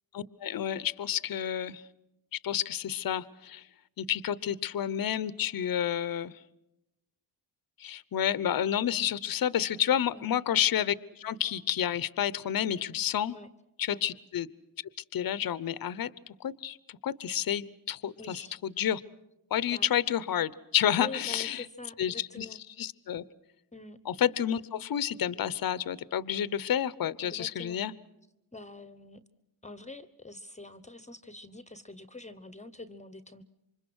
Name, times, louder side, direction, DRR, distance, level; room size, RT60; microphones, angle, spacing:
voice 1, 0.1-1.8 2.4-3.6 4.0-6.3 7.8-13.4 13.8-14.5 15.1-16.1 16.4-19.0 19.5-21.6 22.0-22.5 22.8-23.2 24.1-27.9, left 10 dB, 45° left, 18 dB, 0.9 m, -30 dB
voice 2, 10.1-10.4 13.3-13.5 13.9-14.0 18.2-18.6 19.7-19.9 20.9-22.6 23.7-24.0 27.2-27.8 28.5-29.2 29.6-33.4, left 2 dB, 15° left, 13 dB, 1.0 m, -45 dB
28.0 x 25.0 x 6.3 m, 0.91 s
cardioid pair, 115°, 47 cm